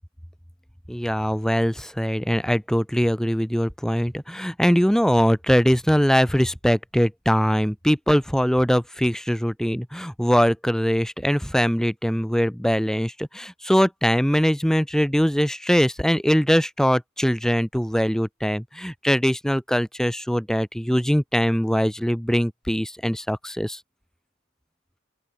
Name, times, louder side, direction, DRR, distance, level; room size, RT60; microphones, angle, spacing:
voice 1, 0.9-23.8, equal, 5° left, 1.4 m, -22 dB
open air
head